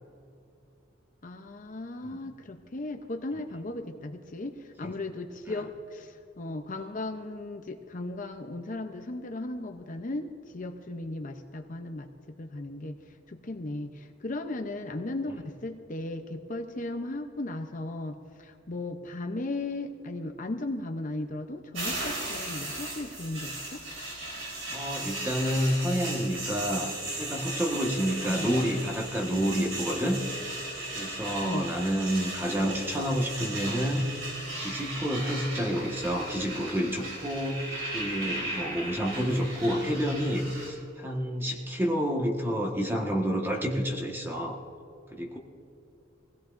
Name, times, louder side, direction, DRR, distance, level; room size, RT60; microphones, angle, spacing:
voice 1, 1.2-12.1 12.4-13.0 13.3-23.8 28.2-28.6 31.4-31.7, left 2 dB, 40° left, 5 dB, 0.7 m, -36 dB
sound 1, 21.7-40.7, right 2 dB, 80° right, 4.2 m, -36 dB
voice 2, 24.7-30.4 30.9-34.1 34.6-44.6 45.1-45.4, equal, 10° right, 0 dB, 1.4 m, -29 dB
23.0 x 16.5 x 2.6 m, 2.6 s
head